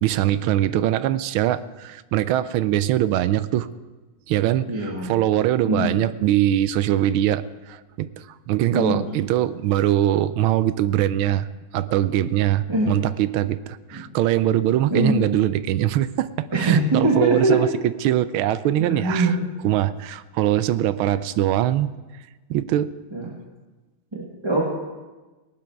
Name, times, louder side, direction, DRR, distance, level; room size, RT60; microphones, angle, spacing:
voice 1, 0.0-3.7 4.3-7.4 7.7-11.5 11.7-19.3 19.6-21.9 22.5-22.9, right 12 dB, 80° right, 15 dB, 1.4 m, -22 dB
voice 2, 4.7-5.1 5.6-6.0 8.7-9.0 12.7-12.9 13.9-14.0 14.9-15.2 16.5-17.6 18.8-19.5 23.1-23.4 24.1-24.6, right 2 dB, 15° right, -2 dB, 1.3 m, -22 dB
18.5 x 12.0 x 4.6 m, 1.2 s
omnidirectional pair, 2.4 m